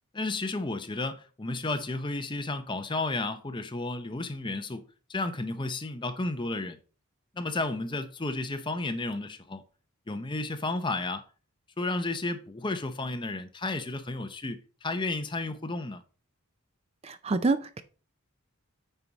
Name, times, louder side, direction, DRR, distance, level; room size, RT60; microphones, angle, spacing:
voice 1, 0.1-4.8 5.1-6.8 7.3-9.6 10.1-11.2 11.8-16.0, left 2 dB, 20° left, 0.7 m, -32 dB
voice 2, 17.0-17.8, right 3 dB, 25° right, 0.4 m, -27 dB
9.1 x 4.6 x 4.0 m
head